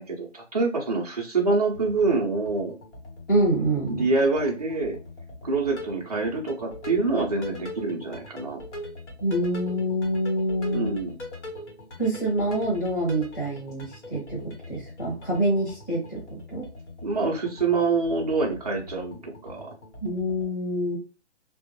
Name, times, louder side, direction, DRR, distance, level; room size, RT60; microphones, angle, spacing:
voice 1, 0.0-2.8 3.9-5.0 5.4-8.6 10.7-11.1 17.0-19.7, right 3 dB, 35° right, -1 dB, 0.4 m, -26 dB
sound 1, 1.7-20.4, left 1 dB, 70° left, 1.1 m, -42 dB
voice 2, 3.3-4.1 9.2-10.9 12.0-16.7 20.0-21.0, right 1 dB, 15° left, -9 dB, 0.7 m, -26 dB
2.2 x 2.0 x 2.8 m, 0.33 s
hypercardioid pair, 175°, 36 cm